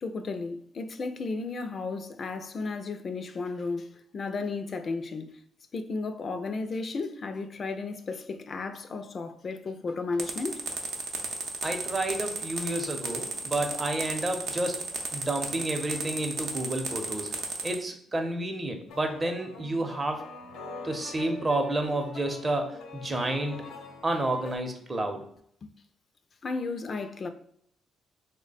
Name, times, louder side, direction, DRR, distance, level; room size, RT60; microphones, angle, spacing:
voice 1, 0.0-5.4 5.7-10.7 25.6-25.7 26.4-27.3, left 3 dB, 45° left, 0.3 m, -34 dB
sound 1, 10.2-17.7, right 3 dB, 70° right, 0.6 m, -33 dB
voice 2, 11.6-17.3 17.6-20.2 20.8-23.7 24.0-25.2, right 2 dB, 25° right, 0.6 m, -30 dB
sound 2, 18.9-24.6, left 4 dB, 90° left, 0.7 m, -43 dB
3.1 x 2.1 x 4.0 m
cardioid pair, 90°, 0 cm